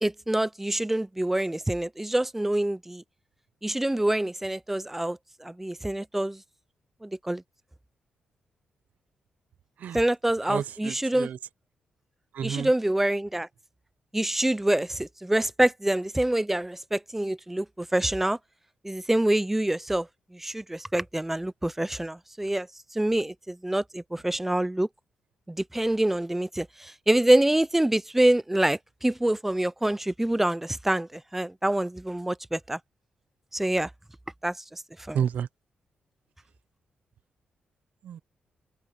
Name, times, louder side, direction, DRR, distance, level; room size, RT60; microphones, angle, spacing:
voice 1, 0.0-3.0 3.6-6.4 7.0-7.4 9.9-11.3 12.4-13.5 14.1-18.4 18.8-22.7 22.9-24.9 25.5-32.8 33.5-33.9 34.4-34.8 35.1-35.2, right 1 dB, 10° right, 0.5 m, -26 dB
voice 2, 10.5-11.4 12.3-12.7 35.1-35.5 38.0-38.2, right 8 dB, 75° right, 0.8 m, -30 dB
open air
cardioid pair, 85°, 3 cm